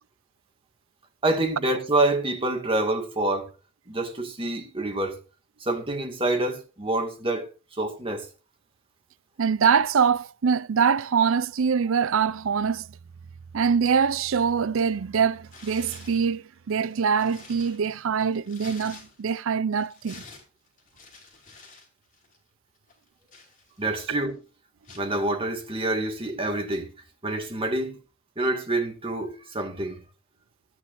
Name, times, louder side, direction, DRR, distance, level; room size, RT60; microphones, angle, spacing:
voice 1, 1.2-3.5 3.9-5.2 5.6-7.5 7.8-8.3 23.8-24.4 24.9-26.9 27.2-28.0 28.4-30.0, right 2 dB, 25° right, 2.2 m, -27 dB
voice 2, 9.4-12.9 13.5-20.2, right 6 dB, 65° right, 0.5 m, -24 dB
Tearing, 15.4-16.3 16.8-19.4 19.7-21.9 22.1-22.4 22.9-24.0 24.8-25.1, left 3 dB, 40° left, 5.3 m, -48 dB
16.0 x 10.0 x 2.7 m
head